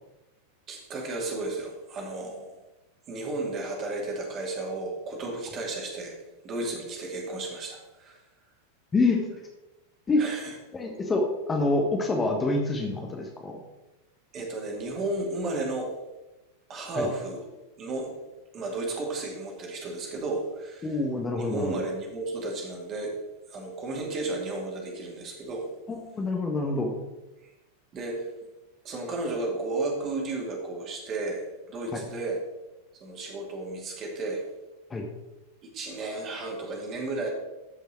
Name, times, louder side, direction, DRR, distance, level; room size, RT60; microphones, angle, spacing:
voice 1, 0.7-2.5 3.1-6.2 6.4-8.2 10.2-10.6 14.3-15.9 16.7-17.4 17.8-18.1 18.5-21.0 21.4-23.1 23.5-25.7 27.9-28.3 28.8-32.4 33.0-34.4 35.6-37.3, right 2 dB, 30° right, 0 dB, 2.6 m, -33 dB
voice 2, 10.7-13.6 16.9-17.1 20.8-21.9 25.9-26.9 31.9-32.0 34.9-35.1, left 2 dB, 15° left, 1 dB, 1.3 m, -26 dB
13.5 x 5.4 x 4.4 m, 1.0 s
figure-of-eight pair, 90°, 0 cm